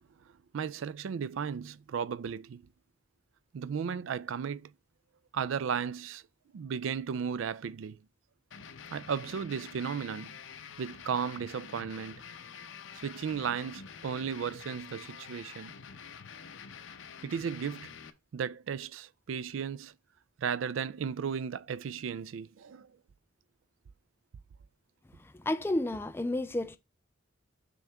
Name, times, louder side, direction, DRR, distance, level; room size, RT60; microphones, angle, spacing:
voice 1, 0.5-2.6 3.5-4.7 5.3-6.2 6.5-8.0 8.9-10.4 10.8-12.2 13.0-15.7 17.2-17.9 18.3-19.9 20.4-22.9, right 7 dB, 80° right, 0.4 m, -35 dB
sound 1, 8.5-18.1, left 7 dB, 80° left, 0.7 m, -47 dB
voice 2, 25.4-26.8, left 1 dB, 10° left, 0.4 m, -31 dB
6.9 x 6.1 x 3.4 m
head